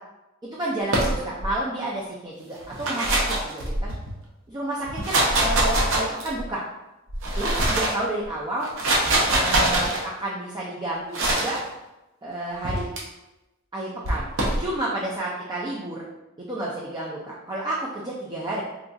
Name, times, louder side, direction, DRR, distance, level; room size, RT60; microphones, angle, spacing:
voice 1, 0.4-3.9 4.5-6.6 7.3-8.7 9.3-11.6 12.2-12.9 13.7-14.3 14.6-16.0 16.4-18.6, right 1 dB, 20° right, -4 dB, 0.4 m, -30 dB
sound 1, 0.9-1.5 2.6-4.1 4.8-6.5 7.1-8.0 8.6-10.0 11.1-11.6 12.6-13.0 14.0-14.6, right 1 dB, 65° right, 0.7 m, -23 dB
3.8 x 2.3 x 2.6 m, 0.99 s
head